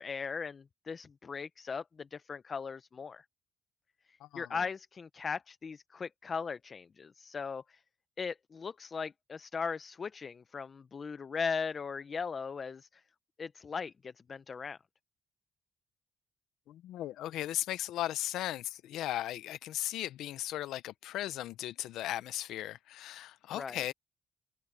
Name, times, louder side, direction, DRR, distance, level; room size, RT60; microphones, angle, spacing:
voice 1, 0.0-3.2 4.1-7.8 8.2-13.0 13.4-14.8 23.5-23.8, left 5 dB, 40° left, 0.7 m, -38 dB
voice 2, 4.2-4.6 16.7-23.9, left 13 dB, 85° left, 0.7 m, -37 dB
cardioid pair, 90°, 0 cm